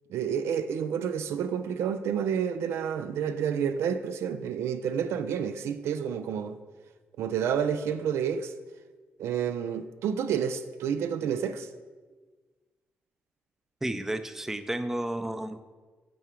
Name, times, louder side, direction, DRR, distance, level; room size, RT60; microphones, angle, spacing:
voice 1, 0.1-6.6 7.2-8.5 9.2-11.7, right 8 dB, 90° right, 0.4 m, -29 dB
voice 2, 13.8-15.6, right 1 dB, 10° right, 0.4 m, -32 dB
8.5 x 3.6 x 4.4 m
cardioid pair, 90°, 4 cm